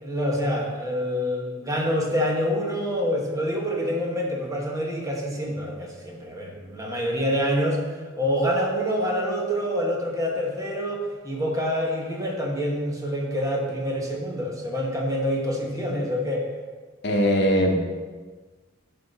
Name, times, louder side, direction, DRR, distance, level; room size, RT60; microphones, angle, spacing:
voice 1, 0.0-7.8 8.2-16.5, equal, 15° right, -1 dB, 1.2 m, -26 dB
voice 2, 17.0-17.8, equal, 60° left, 2 dB, 0.9 m, -20 dB
11.0 x 3.9 x 4.0 m, 1.4 s
head